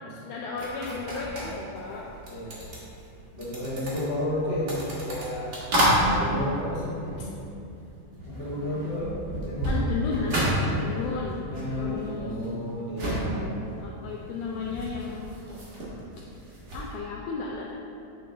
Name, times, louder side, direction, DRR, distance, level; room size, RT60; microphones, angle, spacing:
voice 1, 0.3-2.1 9.6-10.4 10.8-11.4 11.7-12.4 13.8-15.3 16.7-17.7, left 4 dB, 85° left, -2 dB, 1.8 m, -34 dB
sound 1, 0.6-7.9 8.1-16.9, equal, 60° right, 1.0 m, -31 dB
voice 2, 3.3-5.5 6.0-7.3 8.2-9.8 10.2-10.8 11.5-13.8, left 1 dB, 55° left, -8 dB, 0.6 m, -32 dB
7.8 x 5.3 x 3.3 m, 2.7 s
omnidirectional pair, 4.1 m